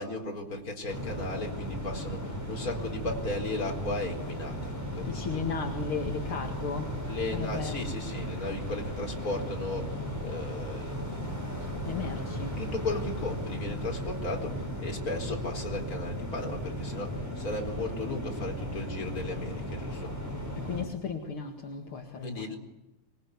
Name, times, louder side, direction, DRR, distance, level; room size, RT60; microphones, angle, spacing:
voice 1, 0.0-5.5 7.0-11.9 12.6-20.1 22.2-22.6, left 2 dB, 20° left, 4.2 m, -36 dB
sound 1, 0.9-20.8, equal, 5° right, 6.7 m, -36 dB
voice 2, 5.1-7.0 7.3-7.9 11.8-12.6 20.6-22.5, left 6 dB, 45° left, 1.9 m, -35 dB
26.0 x 22.5 x 9.6 m
omnidirectional pair, 5.0 m